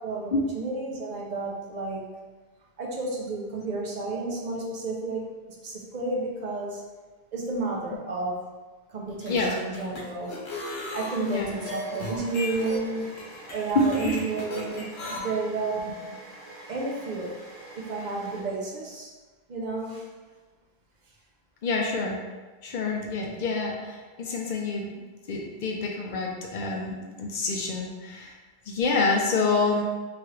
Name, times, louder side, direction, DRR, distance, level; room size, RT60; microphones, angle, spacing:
voice 1, 0.0-2.1 2.8-5.3 5.6-6.8 7.3-8.4 8.9-10.4 10.9-15.9 16.7-17.4 17.8-19.1 19.5-20.0, right 3 dB, 55° right, -2 dB, 0.6 m, -31 dB
sound 1, 9.1-15.2, left 2 dB, 85° left, 0.9 m, -36 dB
sound 2, 10.2-18.9, right 2 dB, 75° right, 1.4 m, -46 dB
voice 2, 13.7-14.2 21.6-22.2 22.6-28.3 28.7-29.8, left 3 dB, 55° left, 0 dB, 0.6 m, -27 dB
2.9 x 2.4 x 3.1 m, 1.3 s
omnidirectional pair, 1.0 m